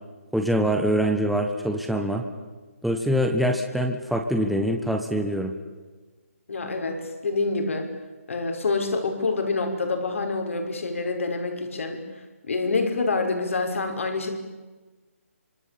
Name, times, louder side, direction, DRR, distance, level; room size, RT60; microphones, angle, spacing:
voice 1, 0.3-2.2 2.8-5.5, equal, ahead, 3 dB, 1.4 m, -24 dB
voice 2, 6.5-7.9 8.3-12.0 12.4-14.3, left 3 dB, 65° left, 4 dB, 5.9 m, -26 dB
26.5 x 25.5 x 8.7 m, 1.3 s
figure-of-eight pair, 155°, 8 cm